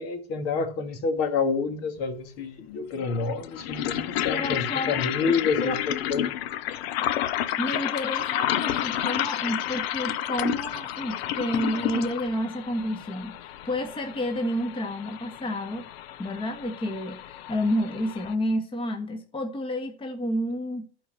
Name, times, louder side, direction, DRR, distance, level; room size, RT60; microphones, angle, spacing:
voice 1, 0.0-6.3, left 4 dB, 50° left, 2.4 m, -28 dB
sound 1, 2.0-2.1 3.0-18.3, left 11 dB, 70° left, 1.0 m, -31 dB
voice 2, 4.3-5.0 5.6-5.8 7.6-15.9 16.2-20.9, equal, 15° left, 1.8 m, -30 dB
11.5 x 4.7 x 7.7 m
hypercardioid pair, 105°, 32 cm